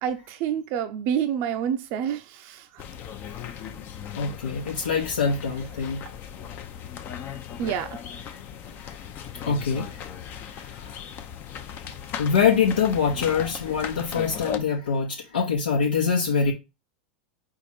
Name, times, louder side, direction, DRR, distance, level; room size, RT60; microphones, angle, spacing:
voice 1, 0.0-2.8 7.6-8.0, right 9 dB, 50° right, 0.5 m, -28 dB
sound 1, 2.8-14.6, left 8 dB, 45° left, 0.6 m, -37 dB
voice 2, 4.1-6.0 7.2-7.4 8.8-8.9 9.4-10.0 10.5-10.9 12.2-16.5, left 6 dB, 90° left, 1.0 m, -24 dB
4.9 x 2.5 x 4.2 m
hypercardioid pair, 105°, 5 cm